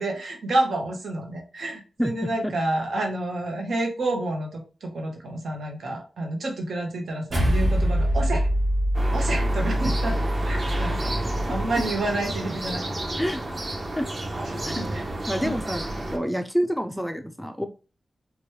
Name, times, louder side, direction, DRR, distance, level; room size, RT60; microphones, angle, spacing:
voice 1, 0.0-8.5 9.1-10.2 10.4-11.1 11.5-12.9 14.5-15.1 15.4-15.5, right 2 dB, 80° right, 1 dB, 0.9 m, -29 dB
voice 2, 2.0-2.5 13.2-13.4 14.0-14.1 14.7-14.9 15.3-17.7, equal, ahead, 7 dB, 0.3 m, -28 dB
sound 1, 7.3-11.9, equal, 60° right, 1.1 m, -24 dB
sound 2, 8.9-16.2, right 1 dB, 35° right, 0.6 m, -31 dB
3.0 x 2.2 x 3.0 m, 0.33 s
wide cardioid pair, 140°, 0 cm